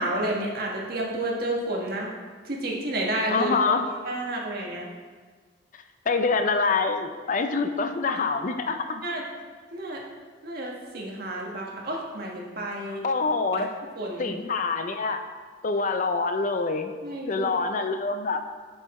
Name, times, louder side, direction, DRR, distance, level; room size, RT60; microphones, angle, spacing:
voice 1, 0.0-2.1 2.4-3.5 4.0-4.9 9.0-9.2 9.7-10.0 10.4-13.0 13.6-13.7 14.0-14.3 17.0-17.5, right 1 dB, 60° right, -1 dB, 1.4 m, -30 dB
voice 2, 3.3-3.9 6.1-9.0 13.0-13.7 14.2-15.2 15.6-16.9 17.3-18.4, left 4 dB, 45° left, 7 dB, 0.5 m, -25 dB
6.6 x 6.5 x 4.2 m, 1.5 s
head